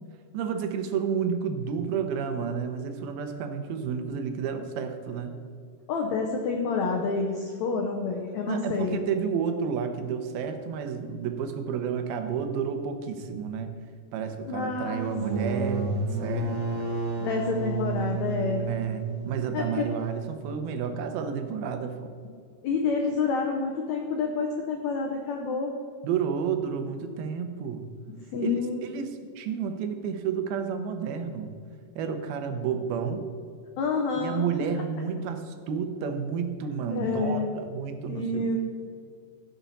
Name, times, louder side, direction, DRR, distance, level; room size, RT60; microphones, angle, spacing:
voice 1, 0.3-5.4 8.5-13.7 14.1-16.9 18.7-22.1 26.0-27.9 28.4-28.6 28.8-31.5 32.0-33.3 34.2-38.5, right 6 dB, 80° right, 7 dB, 2.7 m, -31 dB
voice 2, 5.9-9.0 14.5-15.4 17.2-18.8 19.5-19.9 22.6-25.7 28.3-28.9 33.8-34.7 36.9-37.5 38.1-38.6, left 4 dB, 80° left, 2 dB, 1.6 m, -28 dB
sound 1, 15.0-20.5, right 3 dB, 40° right, 2.4 m, -31 dB
15.5 x 6.9 x 4.1 m, 2.2 s
omnidirectional pair, 4.3 m